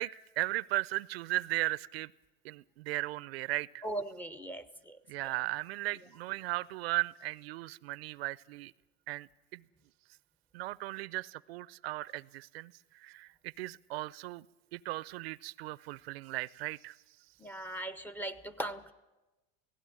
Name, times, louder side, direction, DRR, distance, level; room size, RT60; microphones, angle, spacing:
voice 1, 0.0-2.1 2.4-3.8 5.1-8.7 9.1-9.6 10.5-14.5 14.7-17.0, right 18 dB, 80° right, 0.6 m, -37 dB
voice 2, 3.8-5.0 17.4-18.9, right 1 dB, 5° left, 0.8 m, -39 dB
16.5 x 16.5 x 9.9 m
supercardioid pair, 135°, 30 cm